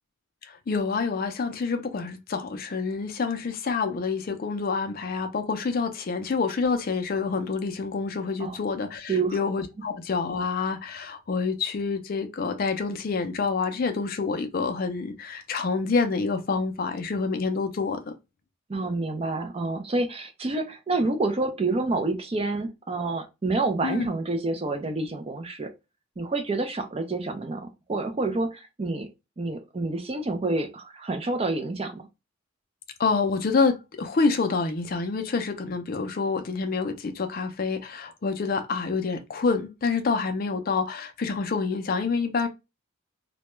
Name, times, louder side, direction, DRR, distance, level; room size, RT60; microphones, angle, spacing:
voice 1, 0.4-18.1 23.8-24.1 33.0-42.5, left 4 dB, 45° left, 0.4 m, -27 dB
voice 2, 18.7-25.7 26.2-29.1 29.4-32.0, right 2 dB, 30° right, 0.4 m, -28 dB
2.2 x 2.1 x 2.9 m
head